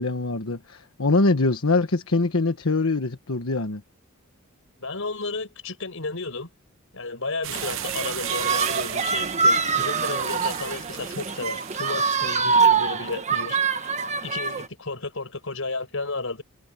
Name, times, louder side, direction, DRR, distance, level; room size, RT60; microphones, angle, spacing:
voice 1, 0.0-3.8, left 3 dB, 90° left, 1.3 m, -23 dB
voice 2, 4.8-6.5 6.9-13.9 14.2-16.4, left 3 dB, 70° left, 6.4 m, -33 dB
sound 1, 7.4-12.5, right 11 dB, 65° right, 1.1 m, -35 dB
sound 2, 7.5-14.7, right 5 dB, 35° right, 1.4 m, -24 dB
head